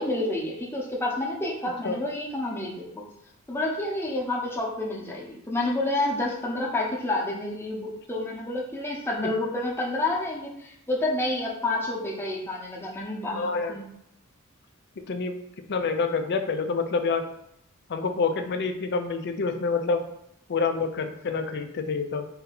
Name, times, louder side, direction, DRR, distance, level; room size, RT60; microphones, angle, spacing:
voice 1, 0.0-2.9 3.5-13.8, left 2 dB, 10° left, -3 dB, 0.8 m, -29 dB
voice 2, 13.3-13.8 15.1-15.4 15.7-17.2 17.9-20.0 20.5-22.3, left 4 dB, 50° left, 7 dB, 0.5 m, -27 dB
4.7 x 2.7 x 4.0 m, 0.78 s
head